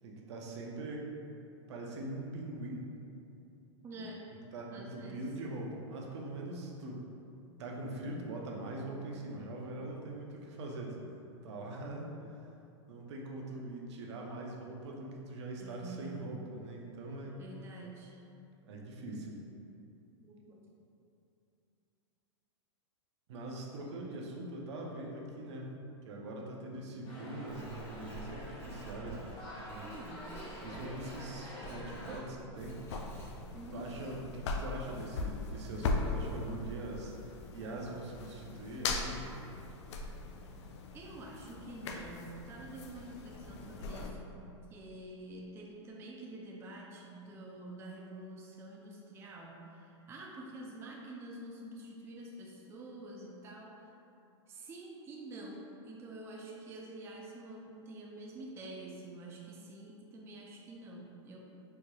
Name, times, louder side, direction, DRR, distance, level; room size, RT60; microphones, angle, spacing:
voice 1, 0.0-1.1 1.7-2.9 3.9-4.1 4.5-7.0 7.6-11.0 11.4-12.5 12.9-17.4 18.6-19.4 23.3-25.7 26.0-29.2 29.7-29.9 30.6-32.8 33.7-37.1 37.5-39.3, right 2 dB, 70° right, -1 dB, 0.6 m, -42 dB
voice 2, 3.8-4.3 4.7-5.3 15.6-16.3 17.4-18.2 20.2-20.7 29.8-30.4 33.5-34.0 40.9-53.9 54.5-61.4, right 2 dB, 15° right, -1 dB, 0.3 m, -47 dB
sound 1, 27.0-32.2, left 1 dB, 35° left, 1.2 m, -48 dB
Writing, 27.5-33.6, right 1 dB, 15° left, 0.8 m, -49 dB
sound 2, 32.6-44.1, left 3 dB, 70° left, 0.4 m, -39 dB
4.4 x 2.9 x 2.3 m, 2.7 s
hypercardioid pair, 115°, 15 cm